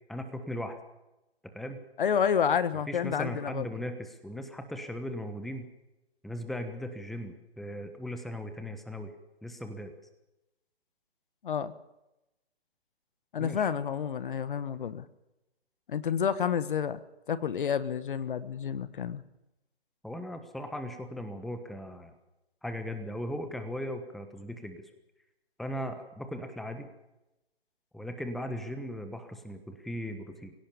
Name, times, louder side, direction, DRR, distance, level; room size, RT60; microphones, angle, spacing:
voice 1, 0.1-0.8 1.4-1.8 2.9-5.7 6.2-9.1 9.4-9.9 13.4-13.7 20.0-22.1 22.6-24.9 25.6-26.9 27.9-30.5, equal, ahead, 8 dB, 1.2 m, -38 dB
voice 2, 2.0-3.7 11.4-11.7 13.3-15.0 15.9-17.0 17.3-19.2, left 7 dB, 50° left, 15 dB, 1.4 m, -29 dB
25.0 x 17.0 x 7.1 m, 0.95 s
figure-of-eight pair, 140°, 33 cm